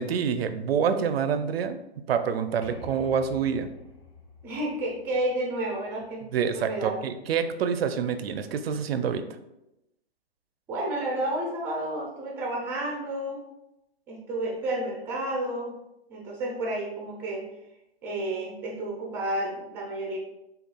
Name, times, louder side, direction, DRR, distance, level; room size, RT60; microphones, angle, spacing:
voice 1, 0.0-1.8 2.1-3.7 6.3-9.2, right 7 dB, 70° right, 10 dB, 0.5 m, -27 dB
sound 1, 2.6-6.3, left 2 dB, 30° left, 1.3 m, -46 dB
voice 2, 4.4-6.2 6.5-7.0 10.7-13.4 14.1-15.7 16.1-17.4 18.0-20.2, right 1 dB, 5° right, -3 dB, 0.4 m, -31 dB
6.5 x 2.3 x 2.2 m, 0.90 s
hypercardioid pair, 145°, 32 cm